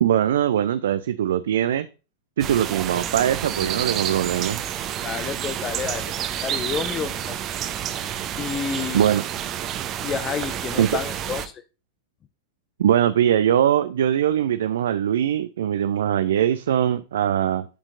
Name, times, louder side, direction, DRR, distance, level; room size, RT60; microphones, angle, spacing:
voice 1, 0.0-1.9 2.4-4.6 8.9-9.2 10.8-10.9 12.8-17.7, right 10 dB, 60° right, 12 dB, 0.3 m, -21 dB
sound 1, 2.4-11.5, right 10 dB, 35° right, 0.7 m, -29 dB
voice 2, 5.0-6.1 6.4-7.4 8.4-9.1 10.0-11.6, left 7 dB, 25° left, 13 dB, 0.4 m, -30 dB
12.0 x 4.4 x 2.6 m, 0.32 s
figure-of-eight pair, 90°, 0 cm